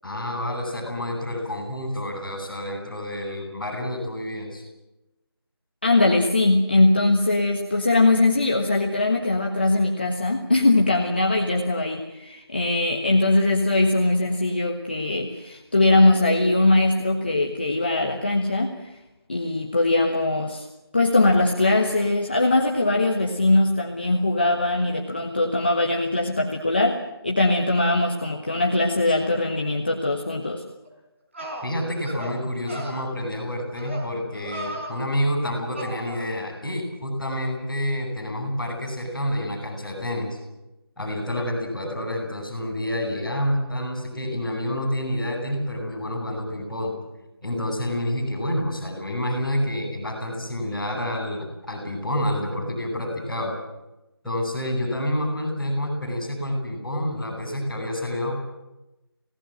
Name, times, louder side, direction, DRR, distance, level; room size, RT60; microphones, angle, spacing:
voice 1, 0.0-4.6 31.6-40.4 41.0-47.0 47.4-53.5 54.2-58.3, left 1 dB, ahead, -16 dB, 5.9 m, -28 dB
voice 2, 5.8-18.9 19.3-20.7 20.9-30.6, left 2 dB, 25° left, 2 dB, 1.4 m, -21 dB
sound 1, 30.8-30.9 31.3-31.7 32.0-32.4 32.7-33.0 33.8-34.1 34.3-35.0 35.7-36.3, right 1 dB, 30° right, 5.4 m, -35 dB
26.5 x 18.5 x 7.8 m, 0.99 s
figure-of-eight pair, 175°, 13 cm